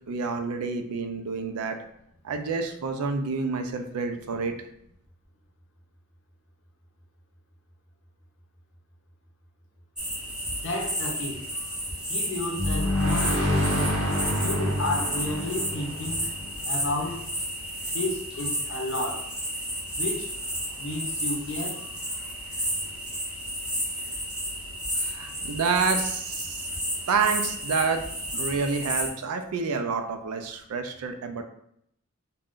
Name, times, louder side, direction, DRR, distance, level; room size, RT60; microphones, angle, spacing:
voice 1, 0.1-1.8 2.2-4.6 25.0-26.7 27.1-28.0 28.3-31.4, right 4 dB, 85° right, 0.4 m, -28 dB
sound 1, 10.0-29.1, equal, 5° right, 0.5 m, -32 dB
voice 2, 10.6-11.4 12.1-13.7 14.4-16.2 16.6-17.2 17.9-19.4 19.9-20.3 20.8-21.8, left 2 dB, 55° left, 0.6 m, -32 dB
sound 2, 12.6-17.2, left 1 dB, 70° right, 0.8 m, -27 dB
2.5 x 2.2 x 3.5 m
head